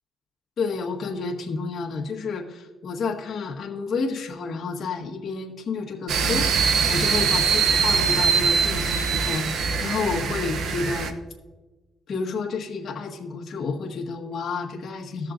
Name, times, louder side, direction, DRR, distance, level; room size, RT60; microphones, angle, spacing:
voice 1, 0.6-11.1 12.1-15.3, left 4 dB, 55° left, -1 dB, 1.5 m, -30 dB
sound 1, 6.1-11.1, right 6 dB, 70° right, 0.7 m, -22 dB
16.5 x 6.5 x 2.6 m, 1.2 s
cardioid pair, 90°, 0 cm